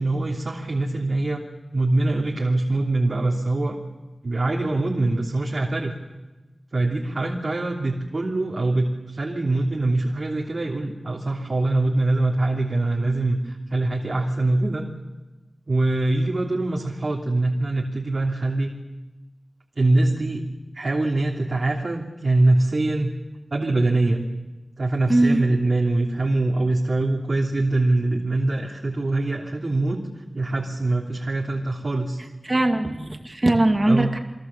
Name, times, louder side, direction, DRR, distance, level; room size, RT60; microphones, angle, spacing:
voice 1, 0.0-1.4 1.7-3.8 4.2-5.9 6.7-14.8 15.7-18.7 19.8-20.4 20.7-23.1 23.5-24.3 24.8-30.0 30.3-32.2 33.9-34.1, right 2 dB, 60° right, -1 dB, 3.2 m, -23 dB
voice 2, 25.1-25.4 32.4-34.2, right 1 dB, 35° right, 4 dB, 2.3 m, -20 dB
29.5 x 22.0 x 7.3 m, 1.1 s
wide cardioid pair, 70°, 0 cm